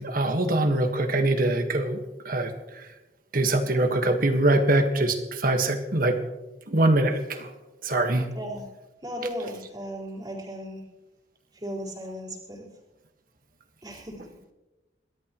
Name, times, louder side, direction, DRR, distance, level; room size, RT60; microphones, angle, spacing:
voice 1, 0.0-2.0 2.2-2.9 3.3-6.2 6.7-7.5 7.8-8.3, right 2 dB, 50° right, 6 dB, 1.6 m, -23 dB
voice 2, 9.0-10.8 11.5-12.7 13.8-14.3, equal, 25° right, -3 dB, 4.5 m, -36 dB
28.5 x 13.0 x 3.1 m, 1.1 s
head